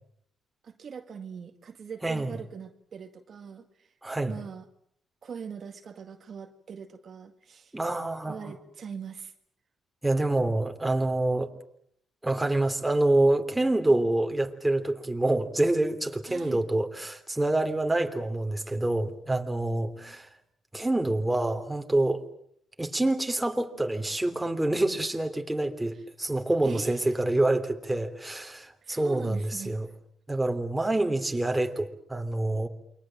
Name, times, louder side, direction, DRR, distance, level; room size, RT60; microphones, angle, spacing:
voice 1, 0.6-3.9 4.3-4.6 5.2-7.8 8.2-9.3 16.3-16.6 20.0-20.1 25.9-26.0 26.6-27.2 28.8-29.7, right 6 dB, 50° right, 6 dB, 2.0 m, -42 dB
voice 2, 2.0-2.4 4.0-4.3 7.7-8.5 10.0-11.5 12.2-20.3 20.7-22.2 22.8-29.9 30.3-32.7, right 2 dB, 10° right, 5 dB, 3.1 m, -27 dB
28.5 x 23.5 x 7.6 m, 0.69 s
cardioid pair, 90°, 0 cm